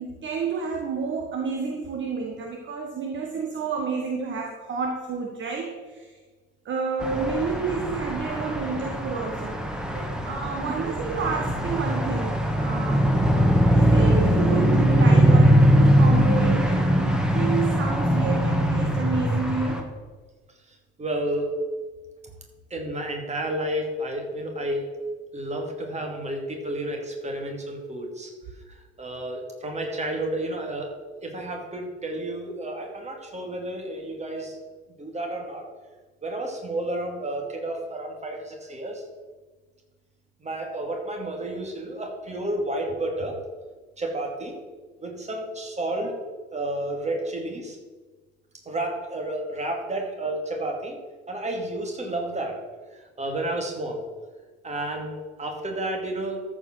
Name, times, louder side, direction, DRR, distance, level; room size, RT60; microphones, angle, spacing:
voice 1, 0.0-6.1 6.6-13.0 13.7-19.9, right 5 dB, 35° right, 2 dB, 1.4 m, -30 dB
sound 1, 7.0-19.8, equal, ahead, 1.6 m, -21 dB
voice 2, 20.7-21.6 22.7-24.9 25.3-28.3 28.7-30.9 31.2-34.6 35.0-35.7 36.2-39.0 40.4-43.4 44.0-44.6 45.0-46.2 46.5-47.8 48.6-51.0 51.3-52.6 52.9-54.0 54.6-56.4, right 1 dB, 20° right, 2 dB, 2.6 m, -31 dB
13.5 x 5.1 x 6.3 m, 1.4 s
figure-of-eight pair, 60°, 32 cm